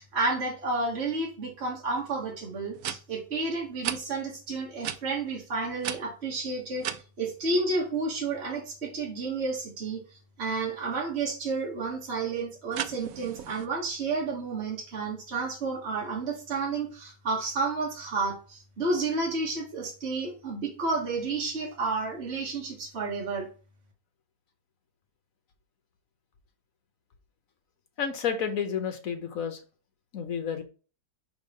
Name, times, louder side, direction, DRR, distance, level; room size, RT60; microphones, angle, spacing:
voice 1, 0.0-10.0 10.4-23.5, right 3 dB, 35° right, -3 dB, 1.7 m, -31 dB
sound 1, 2.0-2.1 2.7-3.0 3.8-4.0 4.8-5.0 5.8-7.0 12.7-13.7, right 10 dB, 75° right, 0.8 m, -34 dB
voice 2, 28.0-29.6 30.1-30.6, left 7 dB, 55° left, 6 dB, 1.0 m, -30 dB
5.2 x 3.7 x 5.2 m, 0.36 s
omnidirectional pair, 2.1 m